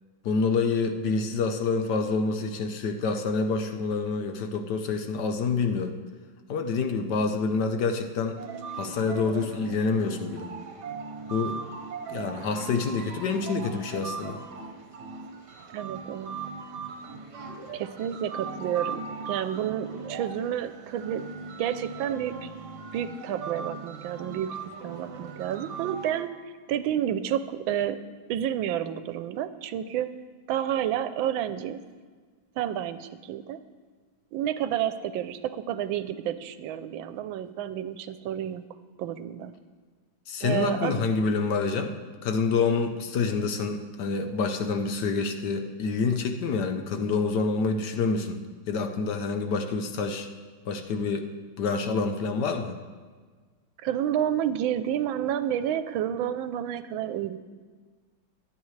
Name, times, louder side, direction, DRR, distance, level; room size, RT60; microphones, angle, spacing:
voice 1, 0.2-6.0 6.5-8.4 8.7-10.5 11.3-11.6 12.1-14.4 40.3-41.9 42.2-48.4 48.7-50.3 50.7-51.3 51.6-52.7, left 4 dB, 65° left, 6 dB, 1.3 m, -27 dB
sound 1, 8.4-26.2, right 5 dB, 65° right, 1.6 m, -39 dB
voice 2, 15.7-16.4 17.7-21.3 21.6-22.5 22.9-24.5 24.8-28.0 28.3-30.1 30.5-31.8 32.6-33.6 34.3-38.6 39.0-39.5 40.4-41.0 53.8-57.4, right 10 dB, 90° right, 12 dB, 1.4 m, -30 dB
22.5 x 8.5 x 3.2 m, 1.5 s
omnidirectional pair, 2.1 m